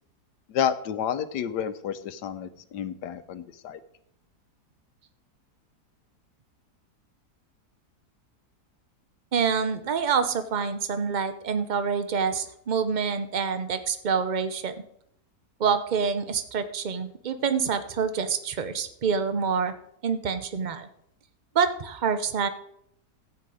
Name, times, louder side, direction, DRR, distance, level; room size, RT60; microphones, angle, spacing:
voice 1, 0.5-3.8, left 8 dB, 85° left, 12 dB, 1.4 m, -30 dB
voice 2, 9.3-14.7 15.6-19.7 20.0-20.9 21.5-22.5, right 6 dB, 40° right, 10 dB, 0.7 m, -26 dB
14.0 x 8.7 x 4.9 m, 0.74 s
omnidirectional pair, 1.7 m